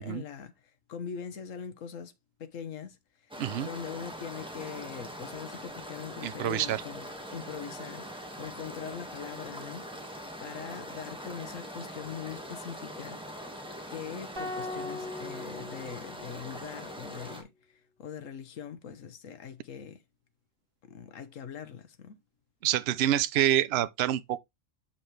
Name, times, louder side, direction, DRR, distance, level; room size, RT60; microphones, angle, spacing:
voice 1, 0.0-2.1 2.4-3.0 3.2-3.3 3.6-7.0 7.3-10.1 10.4-13.5 13.9-20.0 20.9-22.2, left 7 dB, 80° left, 1.4 m, -42 dB
sound 1, 3.3-17.4, equal, 5° right, 1.6 m, -42 dB
voice 2, 3.4-3.7 6.2-6.8 22.6-24.4, right 12 dB, 60° right, 0.8 m, -27 dB
sound 2, 14.4-16.7, left 2 dB, 45° right, 2.1 m, -40 dB
7.4 x 5.8 x 3.2 m
omnidirectional pair, 1.3 m